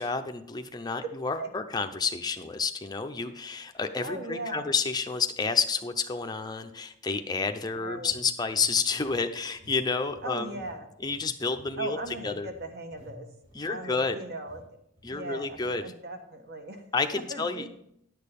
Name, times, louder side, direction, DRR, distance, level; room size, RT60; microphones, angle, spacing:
voice 1, 0.0-10.6 11.0-12.0 12.2-12.5 13.5-14.2 15.0-15.8 16.9-17.6, left 4 dB, 20° left, 6 dB, 0.6 m, -30 dB
sound 1, 3.6-3.7 4.3-4.5 8.0-9.3 9.5-9.8 10.0-14.1 14.5-14.6 15.0-15.2 15.5-15.7, left 1 dB, 80° right, 3.8 m, -53 dB
voice 2, 4.0-4.7 7.8-8.1 10.2-10.9 11.8-13.3 13.7-14.6 15.1-16.9 17.3-17.7, right 2 dB, 50° right, 5 dB, 1.3 m, -38 dB
11.0 x 6.6 x 5.3 m, 0.74 s
head